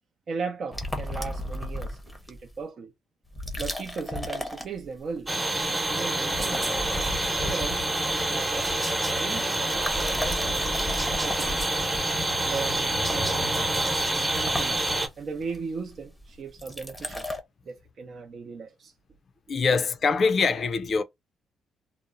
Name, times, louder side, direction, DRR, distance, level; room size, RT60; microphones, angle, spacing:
voice 1, 0.3-2.0 2.3-2.9 3.6-6.7 7.4-7.8 8.3-11.7 12.4-14.9 15.2-17.3 17.7-18.9, right 5 dB, 50° right, 0.6 m, -37 dB
sound 1, 0.7-2.5 3.3-5.2 5.5-5.9 6.2-9.2 9.7-17.4, left 1 dB, 10° left, 0.7 m, -35 dB
sound 2, 5.3-15.1, right 1 dB, 20° right, 0.9 m, -27 dB
voice 2, 19.5-21.0, left 4 dB, 50° left, 0.4 m, -23 dB
2.8 x 2.0 x 2.4 m
cardioid pair, 90°, 0 cm